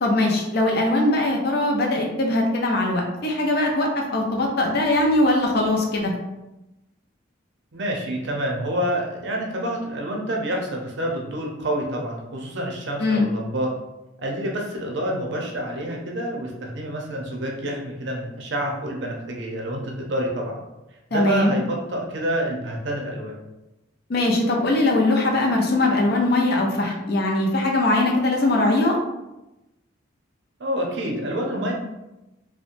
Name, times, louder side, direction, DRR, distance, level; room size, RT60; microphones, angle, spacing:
voice 1, 0.0-6.1 13.0-13.3 21.1-21.5 24.1-28.9, left 2 dB, 50° left, 0 dB, 0.5 m, -21 dB
voice 2, 7.7-13.7 14.2-20.6 21.1-23.3 30.6-31.7, right 1 dB, 60° right, -1 dB, 0.5 m, -28 dB
2.9 x 2.1 x 2.5 m, 0.97 s
head